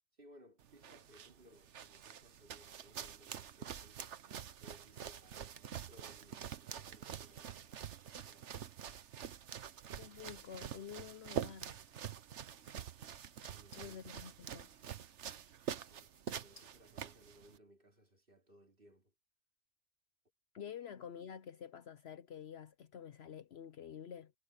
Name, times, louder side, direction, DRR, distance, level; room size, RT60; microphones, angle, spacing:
voice 1, 0.2-4.2 4.6-7.8 8.0-8.8 13.5-14.0 15.6-19.1 20.7-20.8, equal, 40° right, 4.1 m, -63 dB
sound 1, 0.6-17.6, right 9 dB, 65° right, 1.1 m, -46 dB
voice 2, 10.0-11.8 13.7-14.7 20.5-24.3, left 8 dB, 60° left, 0.8 m, -49 dB
sound 2, 11.2-17.7, left 3 dB, 30° left, 1.3 m, -69 dB
omnidirectional pair, 1.3 m